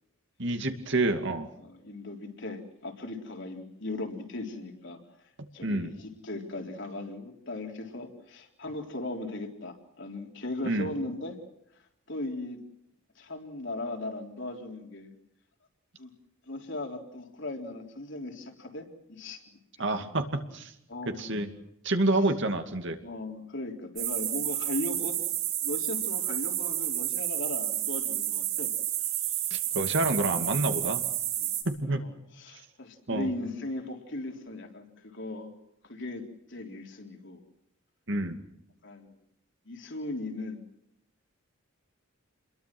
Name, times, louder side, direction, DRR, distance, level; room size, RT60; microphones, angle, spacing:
voice 1, 0.4-1.5 5.6-6.0 10.6-10.9 19.8-20.2 20.5-20.7 21.1-21.5 21.8-23.0 29.5-31.0 31.6-32.0 33.1-33.3 38.1-38.4, right 2 dB, 60° right, 6 dB, 2.5 m, -28 dB
voice 2, 1.6-5.0 5.5-11.4 12.1-12.6 13.2-15.1 16.0-16.1 16.5-20.1 20.9-21.4 22.2-22.3 23.0-28.7 29.3-29.4 31.4-31.5 31.8-35.5 35.8-37.4 38.8-39.1 39.7-40.6, left 2 dB, 60° left, 3 dB, 3.9 m, -38 dB
sound 1, 24.0-31.6, right 12 dB, 90° right, 7.5 m, -30 dB
29.0 x 22.0 x 6.2 m, 0.78 s
head